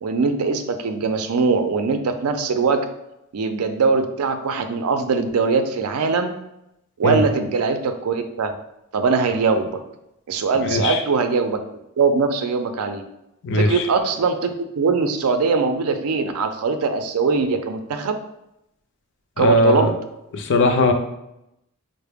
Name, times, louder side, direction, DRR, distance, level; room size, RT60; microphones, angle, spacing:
voice 1, 0.0-2.8 3.3-6.3 7.0-8.5 8.9-9.7 10.3-11.6 12.0-13.0 13.5-14.5 14.8-18.2 19.4-19.9, right 4 dB, 75° right, 7 dB, 0.4 m, -21 dB
voice 2, 10.6-11.0 13.4-13.8 19.4-19.9 20.3-20.9, left 1 dB, 55° left, 6 dB, 0.4 m, -18 dB
4.6 x 2.0 x 3.4 m, 0.85 s
head